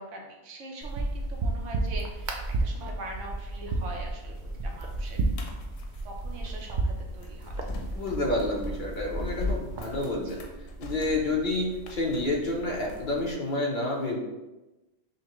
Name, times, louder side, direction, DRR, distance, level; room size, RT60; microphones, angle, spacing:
voice 1, 0.0-4.3 4.6-5.2 6.0-7.5 10.3-10.4, right 2 dB, 85° right, 1 dB, 1.1 m, -42 dB
sound 1, 0.8-10.0, right 2 dB, 60° right, 0.5 m, -32 dB
sound 2, 4.3-13.3, left 2 dB, 85° left, 1.0 m, -40 dB
voice 2, 7.9-10.4 10.8-14.2, left 2 dB, 50° left, -2 dB, 0.8 m, -29 dB
5.6 x 2.2 x 3.0 m, 1.1 s
omnidirectional pair, 1.2 m